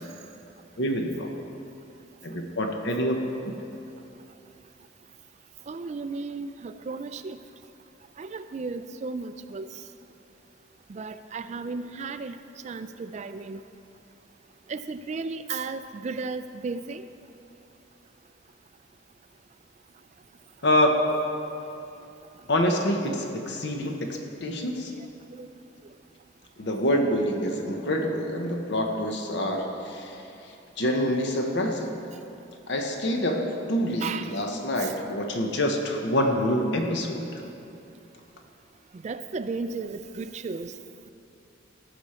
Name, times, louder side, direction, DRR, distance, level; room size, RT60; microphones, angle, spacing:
voice 1, 0.8-1.3 2.2-3.2 20.6-21.0 22.5-24.9 26.6-31.9 32.7-37.4, equal, 55° left, 3 dB, 0.8 m, -26 dB
voice 2, 5.7-7.4 8.2-9.7 10.9-12.4 12.6-13.6 14.7-17.0 25.4-25.5 34.0-34.3 39.0-40.7, right 4 dB, 35° right, 11 dB, 0.3 m, -34 dB
15.0 x 6.2 x 4.3 m, 2.8 s
head